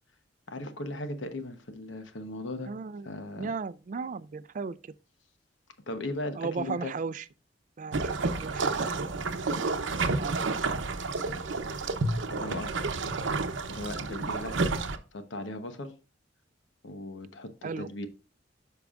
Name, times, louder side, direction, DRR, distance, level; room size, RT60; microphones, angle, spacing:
voice 1, 0.5-2.7 3.0-3.5 5.9-6.9 12.3-12.8 13.7-14.7 15.1-16.0 16.8-18.1, left 1 dB, 85° left, 1.0 m, -37 dB
voice 2, 2.7-3.1 3.4-4.9 6.4-7.3 7.8-8.7 8.9-9.2 10.2-10.8 17.6-17.9, right 4 dB, 45° right, 0.3 m, -36 dB
sound 1, 7.9-15.0, right 3 dB, 85° right, 0.7 m, -30 dB
12.0 x 4.6 x 2.4 m
head